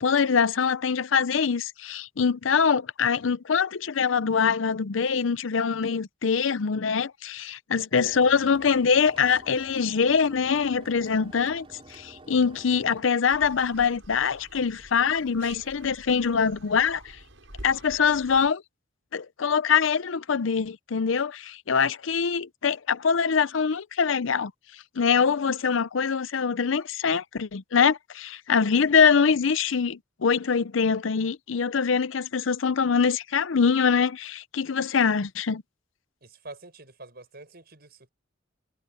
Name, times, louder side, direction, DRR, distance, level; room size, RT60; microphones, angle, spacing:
voice 1, 0.0-17.0 17.6-18.6 19.1-24.5 25.0-35.6, left 6 dB, 85° left, 0.6 m, -24 dB
sound 1, 7.9-13.0, right 2 dB, 30° right, 3.9 m, -49 dB
sound 2, 13.3-18.5, right 1 dB, 85° right, 7.4 m, -48 dB
voice 2, 36.2-38.1, right 2 dB, 55° right, 6.4 m, -46 dB
head